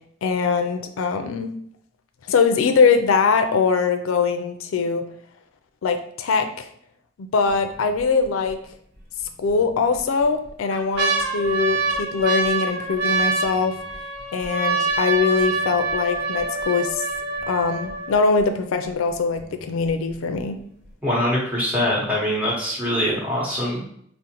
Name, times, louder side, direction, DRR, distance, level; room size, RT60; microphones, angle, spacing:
voice 1, 0.2-1.5 2.3-5.0 5.8-6.7 7.2-8.6 9.4-13.7 14.3-17.0 17.5-20.6, left 5 dB, 90° left, 7 dB, 0.4 m, -22 dB
sound 1, 7.5-8.0 8.5-8.6 9.5-10.0 10.4-18.4 19.1-19.2 19.4-19.9 20.4-20.5, right 3 dB, 55° right, 1.0 m, -25 dB
voice 2, 21.0-23.8, left 1 dB, 10° right, -5 dB, 1.1 m, -23 dB
5.0 x 2.1 x 2.8 m, 0.67 s
head